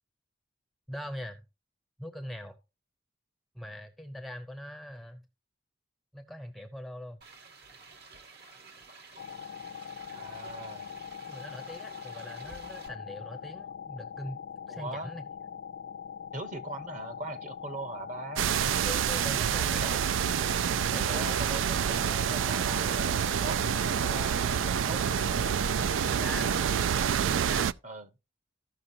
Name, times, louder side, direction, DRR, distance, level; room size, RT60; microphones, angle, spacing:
voice 1, 0.9-1.4 2.0-2.6 3.5-5.3 6.1-7.2 11.3-15.2 18.4-20.0 20.9-21.9 25.8-26.6 27.3-27.7, left 1 dB, ahead, 0.6 m, -42 dB
sound 1, 7.2-12.9, right 3 dB, 55° right, 1.3 m, -51 dB
sound 2, 9.2-27.1, left 8 dB, 85° left, 0.4 m, -42 dB
voice 2, 10.1-10.9 14.7-15.2 16.3-18.5 19.6-20.1 20.7-25.0 27.8-28.1, right 2 dB, 40° right, 1.0 m, -40 dB
sound 3, 18.4-27.7, right 8 dB, 85° right, 0.4 m, -28 dB
15.0 x 5.9 x 2.7 m
head